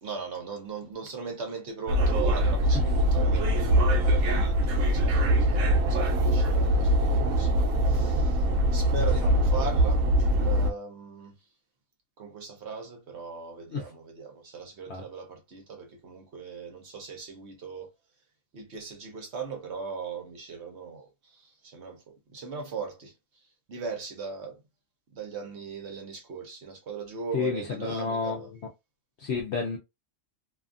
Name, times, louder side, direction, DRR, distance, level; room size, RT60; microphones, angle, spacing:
voice 1, 0.0-8.5 8.7-11.4 12.2-17.9 18.5-23.1 23.7-24.6 25.1-28.5, right 5 dB, 60° right, 1.1 m, -39 dB
sound 1, 1.9-10.7, equal, 85° right, 1.0 m, -23 dB
voice 2, 27.3-28.4 29.2-29.8, left 5 dB, 65° left, 0.9 m, -30 dB
2.7 x 2.4 x 2.4 m
omnidirectional pair, 1.4 m